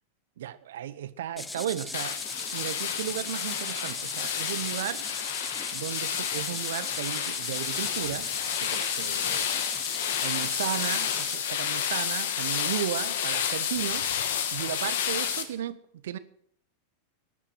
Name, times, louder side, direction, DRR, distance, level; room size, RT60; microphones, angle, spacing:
voice 1, 0.4-2.2 2.5-5.0 5.7-8.3 8.5-9.5 10.2-14.0 14.5-16.2, right 11 dB, 70° right, 15 dB, 0.9 m, -34 dB
sound 1, 1.4-11.4, left 2 dB, 10° left, 1.0 m, -39 dB
sound 2, 1.9-15.4, left 8 dB, 65° left, 1.8 m, -30 dB
15.0 x 9.9 x 7.9 m, 0.68 s
hypercardioid pair, 95°, 0 cm